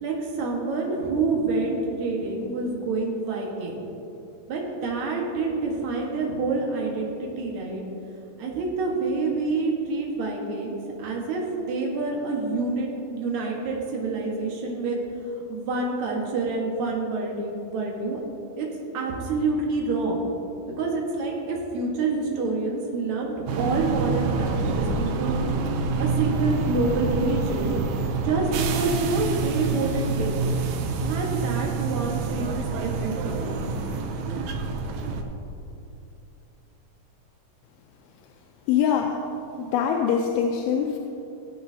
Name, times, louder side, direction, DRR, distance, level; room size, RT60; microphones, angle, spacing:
voice 1, 0.0-3.8 4.5-7.8 8.4-15.0 15.4-18.2 18.6-20.2 20.8-25.4 26.0-27.8 28.2-30.4 31.0-33.4, right 3 dB, 60° right, -1 dB, 2.6 m, -27 dB
sound 1, 23.5-35.2, right 4 dB, 80° right, 1.7 m, -27 dB
voice 2, 38.7-39.2 39.6-41.0, left 8 dB, 90° left, 2 dB, 2.5 m, -23 dB
18.0 x 8.6 x 2.8 m, 2.8 s
omnidirectional pair, 4.2 m